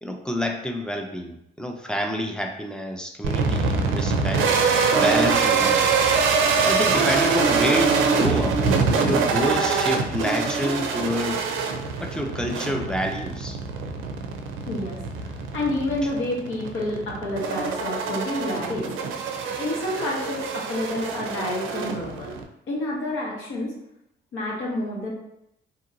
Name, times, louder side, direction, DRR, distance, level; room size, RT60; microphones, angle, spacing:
voice 1, 0.0-4.5 4.9-5.9 6.6-8.6 9.0-11.4 12.0-13.6, equal, 5° left, 3 dB, 0.4 m, -28 dB
sound 1, 3.2-22.4, right 5 dB, 85° right, 0.4 m, -24 dB
voice 2, 14.6-18.9 19.6-22.4 22.7-23.7 24.3-25.1, left 1 dB, 85° left, -4 dB, 1.0 m, -29 dB
2.9 x 2.7 x 2.6 m, 0.81 s
cardioid pair, 90°, 20 cm